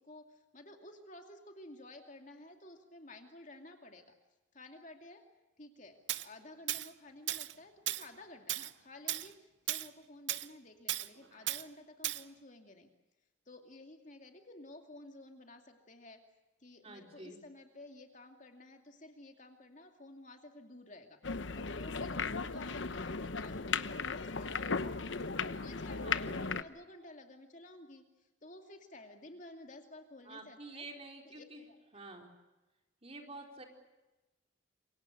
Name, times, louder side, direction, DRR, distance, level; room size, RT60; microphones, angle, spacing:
voice 1, 0.0-4.1 4.5-5.2 5.6-12.9 13.5-16.2 16.6-24.9 25.5-28.0 28.4-30.9 31.3-31.8, left 2 dB, 40° left, 4 dB, 2.5 m, -53 dB
Tools, 6.1-6.3 6.7-6.9 7.3-7.5 7.9-8.1 8.5-8.7 9.1-9.3 9.7-9.9 10.3-10.5 10.9-11.1 11.5-11.6 12.0-12.2, right 14 dB, 65° right, 0.8 m, -35 dB
voice 2, 16.8-17.4 26.0-26.4 30.2-31.6 31.9-32.3 33.0-33.6, right 2 dB, 30° right, 2 dB, 4.3 m, -49 dB
sound 1, 21.2-26.6, left 4 dB, 65° left, 1.0 m, -36 dB
27.5 x 24.5 x 6.7 m, 1.1 s
head